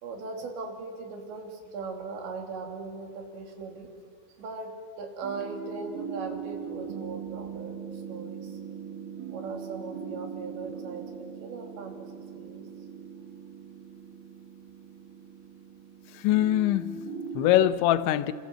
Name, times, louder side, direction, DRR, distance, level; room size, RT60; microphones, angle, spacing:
voice 1, 0.0-3.9 4.4-8.6 9.3-12.6, right 4 dB, 75° right, 5.3 m, -39 dB
sound 1, 5.2-17.7, right 7 dB, 60° right, 2.6 m, -40 dB
voice 2, 16.1-18.3, left 13 dB, 90° left, 3.2 m, -24 dB
28.0 x 26.5 x 7.7 m
omnidirectional pair, 5.2 m